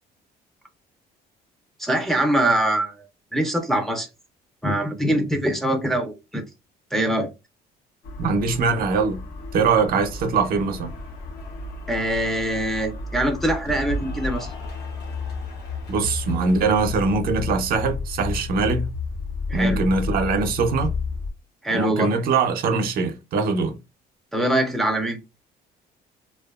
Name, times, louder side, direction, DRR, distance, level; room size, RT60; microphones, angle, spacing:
voice 1, 1.8-2.9 3.3-4.1 4.6-6.4 6.9-7.3 11.9-14.5 19.5-19.8 21.6-22.1 24.3-25.2, right 1 dB, ahead, 0.5 m, -23 dB
sound 1, 8.0-21.3, left 4 dB, 60° left, 0.6 m, -32 dB
voice 2, 8.2-9.2 9.5-10.9 15.9-18.9 19.5-20.9 21.7-23.8, right 4 dB, 60° right, 0.6 m, -22 dB
Cheering / Applause, 9.4-17.1, right 1 dB, 80° left, 1.2 m, -42 dB
2.6 x 2.3 x 2.3 m
cardioid pair, 110°, 17 cm